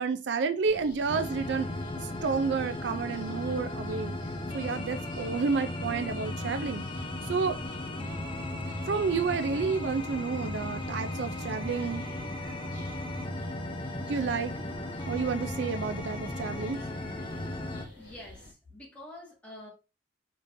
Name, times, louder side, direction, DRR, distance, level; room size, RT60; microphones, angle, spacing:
voice 1, 0.0-1.7 2.0-4.2 4.5-6.8 7.3-7.6 8.9-12.0 14.1-14.6 15.1-16.8, right 5 dB, 70° right, 0.4 m, -30 dB
sound 1, 0.6-18.5, left 2 dB, 50° left, 2.0 m, -50 dB
sound 2, 1.1-17.9, left 1 dB, 30° left, 0.7 m, -36 dB
voice 2, 18.0-19.7, left 1 dB, 10° left, 2.0 m, -47 dB
5.2 x 3.6 x 2.6 m
head